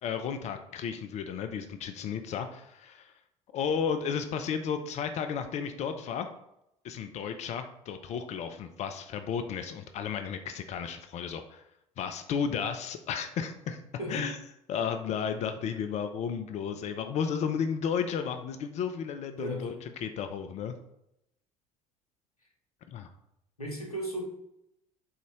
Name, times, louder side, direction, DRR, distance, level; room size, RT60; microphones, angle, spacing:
voice 1, 0.0-3.1 3.5-6.3 6.8-11.6 12.0-13.8 14.1-14.4 14.7-20.7 22.9-23.1, left 7 dB, 40° left, 8 dB, 0.4 m, -33 dB
voice 2, 19.4-19.7 23.6-24.2, equal, 90° left, -1 dB, 0.7 m, -35 dB
3.8 x 2.4 x 3.0 m, 0.81 s
figure-of-eight pair, 60°, 18 cm